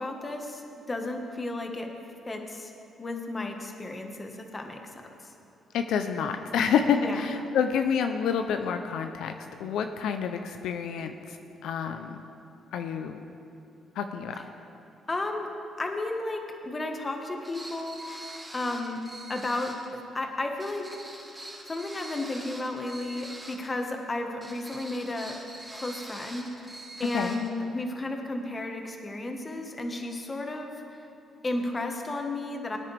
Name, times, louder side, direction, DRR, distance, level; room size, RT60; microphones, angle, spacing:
voice 1, 0.0-1.9 2.3-2.7 3.0-4.9 6.9-7.2 15.1-15.5 15.8-18.1 18.5-19.0 19.3-21.0 21.7-25.4 25.7-26.5 27.0-30.7 31.4-32.8, left 2 dB, 25° left, 3 dB, 1.4 m, -33 dB
voice 2, 5.7-9.3 9.6-11.4 11.6-12.2 12.7-13.2 14.0-14.4 27.1-27.4, left 7 dB, 80° left, 6 dB, 0.5 m, -28 dB
sound 1, 17.4-19.9 20.6-23.7 24.4-27.5, right 1 dB, 10° right, 2.2 m, -44 dB
19.0 x 9.6 x 3.4 m, 2.8 s
cardioid pair, 90°, 0 cm